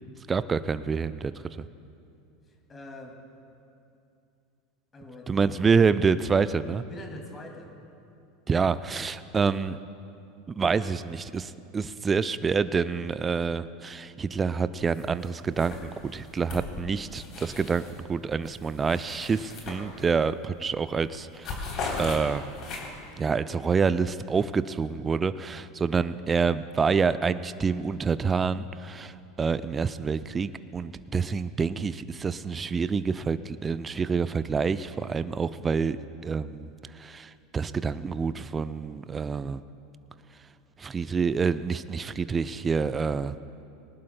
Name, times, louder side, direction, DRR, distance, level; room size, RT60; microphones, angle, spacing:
voice 1, 0.3-1.3 5.3-6.8 8.5-9.8 10.5-21.7 22.0-22.4 23.2-36.0 36.2-39.6 40.8-43.4, right 5 dB, 25° right, 14 dB, 0.4 m, -27 dB
voice 2, 2.4-3.2 4.9-5.4 6.9-7.7, left 2 dB, 25° left, 2 dB, 2.3 m, -44 dB
sound 1, 14.9-15.3 15.5-18.0 18.4-20.3 20.7-20.9 21.2-23.1, left 3 dB, 45° left, 3.3 m, -38 dB
19.5 x 18.5 x 2.2 m, 2.6 s
hypercardioid pair, 80°, 0 cm